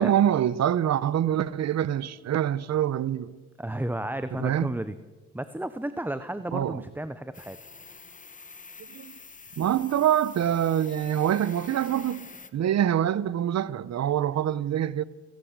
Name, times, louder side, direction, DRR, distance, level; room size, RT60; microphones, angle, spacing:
voice 1, 0.0-3.3 4.3-4.7 6.5-6.8 8.9-9.1 9.6-12.2 12.5-15.0, right 10 dB, 60° right, 1.0 m, -25 dB
voice 2, 3.6-4.9 5.3-7.6, right 1 dB, 5° right, 1.0 m, -32 dB
sound 1, 7.3-12.5, left 4 dB, 25° left, 1.8 m, -46 dB
29.0 x 16.5 x 8.2 m
cardioid pair, 90°, 30 cm